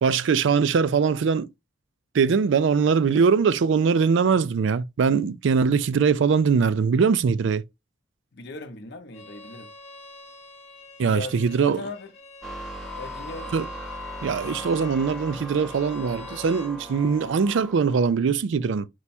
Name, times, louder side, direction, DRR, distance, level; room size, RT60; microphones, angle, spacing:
voice 1, 0.0-1.5 2.1-7.6 11.0-11.8 13.5-13.6 14.2-18.9, right 5 dB, 65° right, 0.4 m, -22 dB
voice 2, 8.3-9.7 11.1-12.1 12.9-13.6 17.2-17.4, left 3 dB, 55° left, 0.7 m, -38 dB
Bowed string instrument, 9.1-16.7, left 2 dB, 35° left, 1.0 m, -46 dB
sound 1, 12.4-18.1, equal, ahead, 0.6 m, -38 dB
4.6 x 2.2 x 4.1 m
head